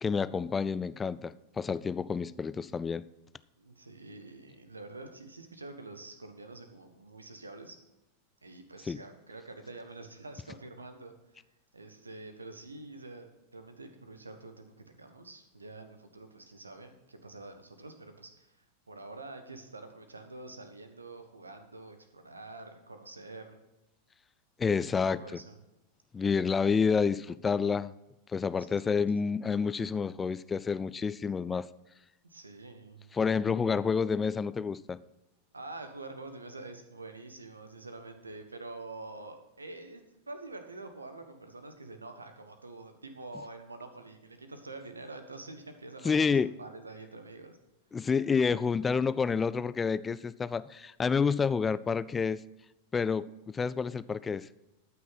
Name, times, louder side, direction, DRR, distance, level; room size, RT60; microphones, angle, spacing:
voice 1, 0.0-3.0 8.9-9.0 24.6-25.2 26.1-27.9 28.3-31.7 33.1-35.0 46.0-46.5 47.9-52.4 52.9-54.5, left 5 dB, 15° left, 0.3 m, -29 dB
voice 2, 3.6-7.8 8.4-11.1 11.7-23.6 25.1-25.6 28.8-29.3 32.3-33.1 35.5-47.6 48.0-48.2, right 2 dB, 80° right, 1.3 m, -46 dB
13.0 x 6.1 x 5.7 m
figure-of-eight pair, 90°, 0 cm